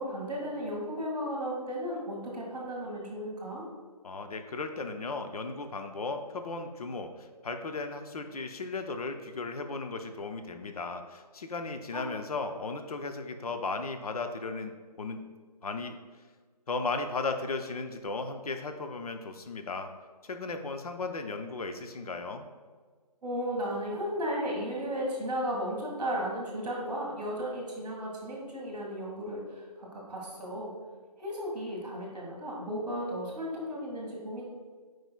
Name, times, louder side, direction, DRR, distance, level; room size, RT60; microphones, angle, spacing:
voice 1, 0.0-3.6 11.9-12.1 23.2-29.4 29.8-30.7 31.2-34.4, equal, ahead, -18 dB, 0.5 m, -34 dB
voice 2, 4.0-15.2 15.6-16.0 16.7-19.9 20.2-22.5, left 3 dB, 65° left, 6 dB, 0.6 m, -36 dB
8.9 x 4.7 x 2.3 m, 1.5 s
figure-of-eight pair, 160°, 21 cm